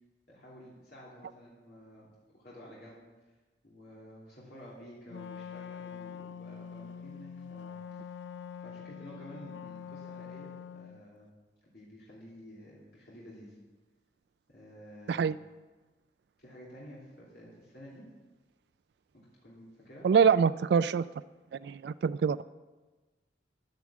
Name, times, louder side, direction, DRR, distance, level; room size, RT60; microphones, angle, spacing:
voice 1, 0.3-3.0 3.6-7.8 8.5-11.3 11.6-13.5 14.5-15.3 16.4-18.1 19.4-20.1, equal, 60° left, -7 dB, 3.1 m, -51 dB
Wind instrument woodwind instrument, 5.1-11.0, left 7 dB, 80° left, 0.4 m, -44 dB
voice 2, 20.0-21.0 21.6-22.4, right 6 dB, 65° right, 13 dB, 0.3 m, -24 dB
11.0 x 9.3 x 7.4 m, 1.2 s
head